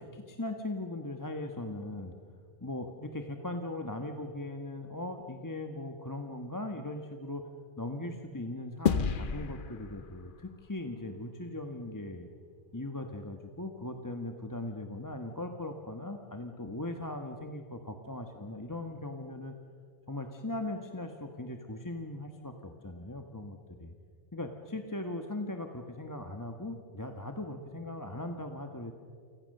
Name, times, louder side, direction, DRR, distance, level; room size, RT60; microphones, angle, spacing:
voice 1, 0.0-2.1 2.6-7.5 7.8-12.3 12.7-19.5 20.1-23.9 24.3-28.9, left 1 dB, 15° left, 5 dB, 1.3 m, -39 dB
sound 1, 8.9-11.5, left 6 dB, 50° left, 1.0 m, -33 dB
29.0 x 25.5 x 6.7 m, 2.3 s
omnidirectional pair, 1.2 m